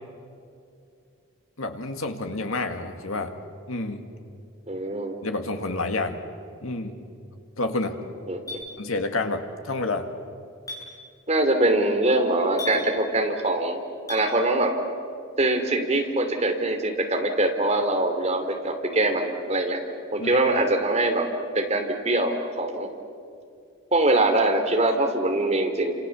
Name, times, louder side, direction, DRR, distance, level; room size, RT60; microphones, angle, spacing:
voice 1, 1.6-3.3 3.7-4.1 5.2-6.2 6.6-7.0 7.6-8.0 8.8-10.1 20.2-20.3, left 2 dB, 75° left, 6 dB, 2.2 m, -29 dB
voice 2, 4.7-5.1 8.3-8.6 11.3-13.8 14.1-14.7 15.4-19.8 20.1-21.3 21.5-22.9 23.9-25.9, right 2 dB, 30° right, 4 dB, 2.9 m, -23 dB
Chink clink, 8.5-8.6 10.7-10.8 12.6-12.8 14.1-14.2, left 3 dB, 15° left, 7.9 m, -34 dB
29.0 x 27.0 x 7.2 m, 2.5 s
head